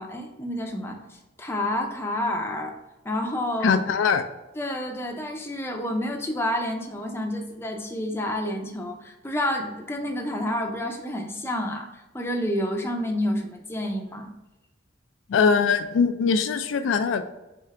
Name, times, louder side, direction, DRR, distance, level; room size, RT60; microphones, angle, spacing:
voice 1, 0.0-2.7 3.0-3.8 4.6-14.3, left 1 dB, 15° left, 2 dB, 0.5 m, -29 dB
voice 2, 3.6-4.2 15.3-17.2, left 5 dB, 80° left, 9 dB, 0.3 m, -21 dB
3.7 x 3.5 x 3.3 m, 0.99 s
head